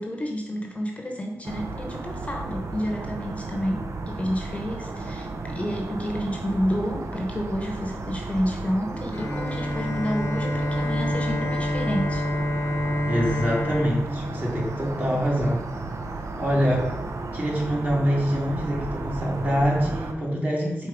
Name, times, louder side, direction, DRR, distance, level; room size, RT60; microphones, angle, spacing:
voice 1, 0.0-12.2, equal, 25° left, 1 dB, 0.8 m, -30 dB
sound 1, 1.4-20.1, right 2 dB, 70° right, 0.6 m, -34 dB
Bowed string instrument, 9.1-15.1, left 1 dB, 65° left, 0.8 m, -28 dB
voice 2, 13.1-15.6 16.4-16.9 17.3-20.9, equal, 35° right, -3 dB, 1.9 m, -25 dB
4.6 x 4.1 x 5.0 m, 1.0 s
wide cardioid pair, 80°, 5 cm